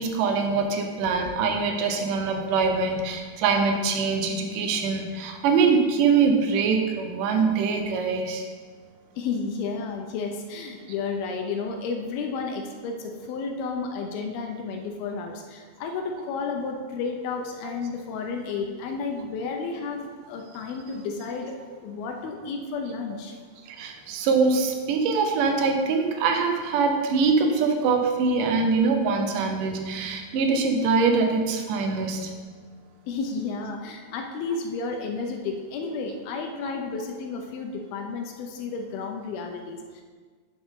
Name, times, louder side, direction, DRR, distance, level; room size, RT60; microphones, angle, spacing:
voice 1, 0.0-8.4 17.6-17.7 23.7-32.4, right 4 dB, 80° right, 4 dB, 1.9 m, -23 dB
voice 2, 9.2-23.3 33.1-40.0, left 4 dB, 80° left, 3 dB, 2.4 m, -32 dB
9.7 x 7.0 x 3.7 m, 1.5 s
omnidirectional pair, 4.7 m